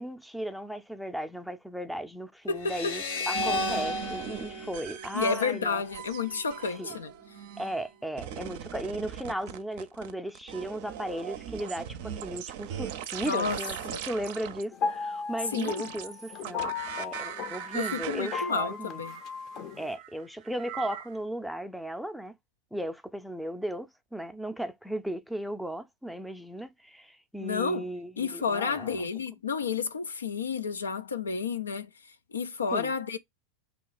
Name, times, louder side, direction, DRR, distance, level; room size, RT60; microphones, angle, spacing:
voice 1, 0.0-5.8 6.8-6.9 7.6-19.0 19.8-22.3 22.7-29.1 32.7-32.9, right 1 dB, ahead, 0.5 m, -36 dB
voice 2, 2.5-3.0 5.1-7.1 13.3-13.6 13.9-14.0 15.5-15.9 17.7-19.2 27.4-27.9 28.2-31.9 32.3-33.2, left 5 dB, 85° left, 0.4 m, -31 dB
sound 1, 2.6-5.9, left 2 dB, 60° left, 1.0 m, -33 dB
sound 2, 3.3-5.6 5.9-7.9 8.2-14.6 15.5-21.2, right 10 dB, 60° right, 0.5 m, -40 dB
sound 3, 14.7-19.9, left 6 dB, 45° left, 0.6 m, -36 dB
2.9 x 2.3 x 3.9 m
hypercardioid pair, 90°, 0 cm